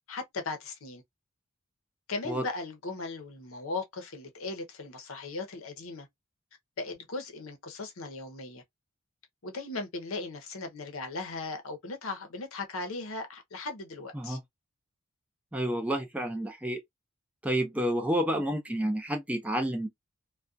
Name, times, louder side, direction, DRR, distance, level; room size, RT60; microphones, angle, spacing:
voice 1, 0.1-1.0 2.1-6.1 6.8-8.6 9.4-14.4, left 3 dB, 75° left, 0.7 m, -38 dB
voice 2, 15.5-16.8 17.4-19.9, equal, 5° right, 0.4 m, -29 dB
2.3 x 2.2 x 2.4 m
head